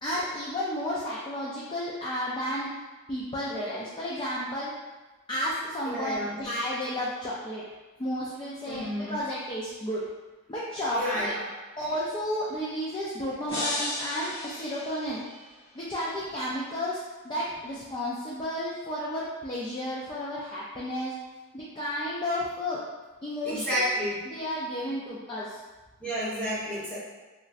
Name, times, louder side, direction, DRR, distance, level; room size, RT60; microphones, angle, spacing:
voice 1, 0.0-2.7 3.1-4.7 5.3-7.6 8.0-10.0 10.5-11.3 11.8-15.2 15.7-21.1 21.5-22.8 23.2-23.9 24.3-25.6, equal, 20° left, -7 dB, 0.4 m, -32 dB
voice 2, 5.9-6.4 8.6-9.2 10.9-11.4 23.4-24.1 26.0-27.0, equal, 5° left, -11 dB, 1.1 m, -30 dB
sound 1, 13.5-15.6, left 1 dB, 55° left, 0.8 m, -34 dB
3.0 x 2.5 x 2.5 m, 1.2 s
head